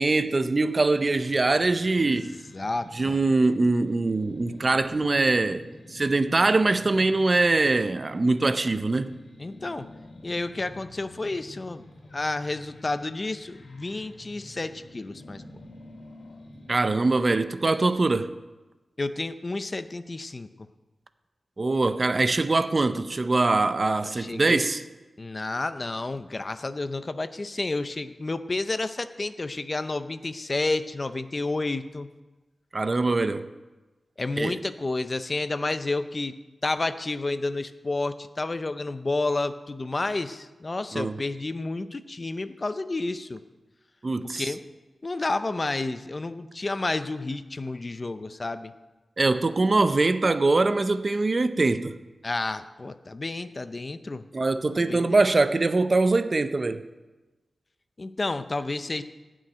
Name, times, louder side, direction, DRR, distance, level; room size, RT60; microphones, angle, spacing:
voice 1, 0.0-2.3 2.9-9.1 16.7-18.4 21.6-24.8 32.7-33.5 34.4-34.6 40.9-41.2 44.0-44.5 49.2-52.0 54.3-56.9, right 3 dB, 35° right, 0.6 m, -23 dB
sound 1, 1.0-16.7, left 1 dB, 85° left, 2.2 m, -48 dB
voice 2, 2.5-3.2 9.4-9.9 10.2-11.8 12.1-15.4 19.0-20.5 24.1-24.7 25.2-32.1 34.2-36.3 36.6-43.4 44.4-44.6 45.0-48.7 52.2-54.3 54.8-55.1 58.0-59.0, left 2 dB, 30° left, 0.6 m, -30 dB
16.0 x 6.3 x 9.2 m
wide cardioid pair, 140°, 0 cm